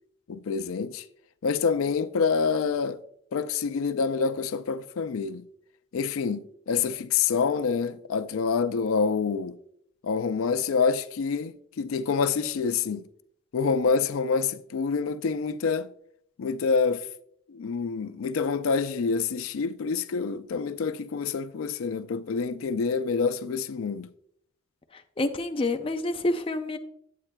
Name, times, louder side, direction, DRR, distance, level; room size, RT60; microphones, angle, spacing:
voice 1, 0.3-1.0 1.4-3.0 3.3-5.4 5.9-9.6 10.0-13.0 13.5-15.9 16.4-17.1 17.5-24.1, left 5 dB, 90° left, 0.4 m, -27 dB
voice 2, 24.9-26.8, left 2 dB, 25° left, 0.4 m, -28 dB
8.7 x 8.5 x 2.2 m
head